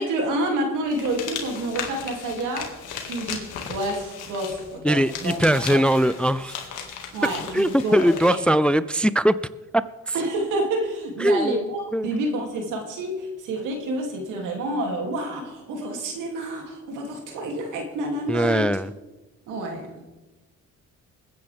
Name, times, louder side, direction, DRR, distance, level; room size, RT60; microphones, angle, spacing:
voice 1, 0.0-2.7 3.1-5.4 5.7-5.8 7.1-8.4 10.1-18.7 19.5-20.0, right 1 dB, 90° right, 2 dB, 2.8 m, -28 dB
sound 1, 0.9-8.4, left 7 dB, 85° left, 2.1 m, -36 dB
voice 2, 4.8-6.6 7.5-9.4 9.7-10.1 11.2-11.6 11.9-12.1 18.3-18.9, equal, 5° left, 16 dB, 0.3 m, -21 dB
21.0 x 9.7 x 3.5 m, 1.1 s
cardioid pair, 90°, 30 cm